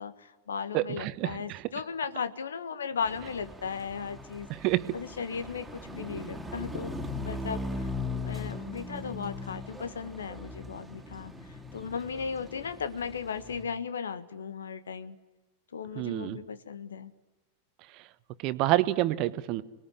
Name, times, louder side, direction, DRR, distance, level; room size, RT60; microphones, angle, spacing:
voice 1, 0.0-4.5 4.9-7.9 8.2-15.2 15.7-17.1, left 6 dB, 70° left, 13 dB, 1.5 m, -36 dB
voice 2, 0.7-1.6 4.5-5.0 16.0-16.4 18.4-19.6, right 16 dB, 40° right, 14 dB, 1.2 m, -28 dB
sound 1, 3.0-13.6, left 2 dB, 5° right, 3.5 m, -39 dB
28.5 x 20.5 x 10.0 m, 1.2 s
figure-of-eight pair, 90°, 0 cm